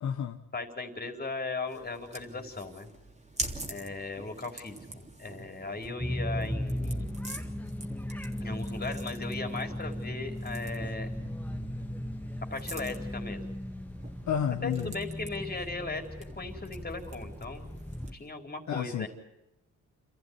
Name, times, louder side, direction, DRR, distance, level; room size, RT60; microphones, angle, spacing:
voice 1, 0.0-0.4 14.3-14.9 18.7-19.1, left 8 dB, 60° left, 5 dB, 1.3 m, -30 dB
voice 2, 0.5-2.9 3.7-7.1 8.4-11.1 12.5-13.4 14.6-16.0 16.4-17.8 18.1-19.1, left 3 dB, 30° left, 4 dB, 4.3 m, -37 dB
sound 1, 1.7-18.3, right 2 dB, 20° right, 3.2 m, -45 dB
sound 2, 6.0-18.1, left 1 dB, 5° left, 2.0 m, -37 dB
28.0 x 14.5 x 9.7 m, 0.88 s
cardioid pair, 85°, 32 cm